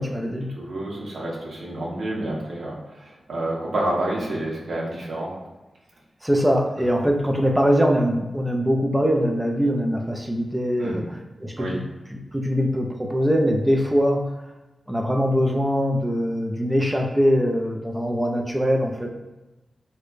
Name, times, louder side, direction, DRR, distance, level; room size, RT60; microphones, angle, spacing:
voice 1, 0.0-0.5 6.2-11.7 12.1-14.3 14.9-19.1, equal, 10° right, 2 dB, 0.4 m, -22 dB
voice 2, 0.6-5.3 10.8-11.0 11.6-11.8, right 1 dB, 75° right, -3 dB, 0.9 m, -29 dB
4.6 x 2.2 x 2.5 m, 1.1 s
wide cardioid pair, 115°, 0 cm